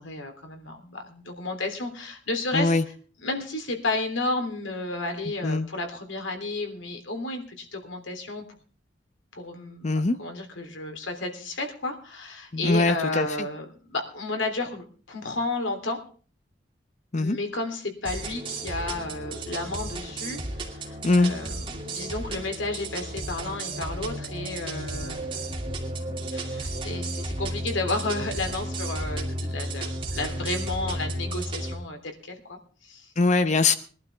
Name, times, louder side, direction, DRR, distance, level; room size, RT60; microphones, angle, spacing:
voice 1, 0.0-2.8 3.2-8.4 9.3-9.9 10.2-16.0 17.2-25.2 26.0-33.1, left 2 dB, 85° left, 4 dB, 3.2 m, -32 dB
voice 2, 2.5-2.8 5.4-5.7 9.8-10.2 12.5-13.5 17.1-17.4 21.0-21.3 33.2-33.7, left 3 dB, 40° left, 11 dB, 0.7 m, -22 dB
sound 1, 18.0-31.7, right 1 dB, 30° right, 2.7 m, -33 dB
21.5 x 12.0 x 3.5 m, 0.40 s
head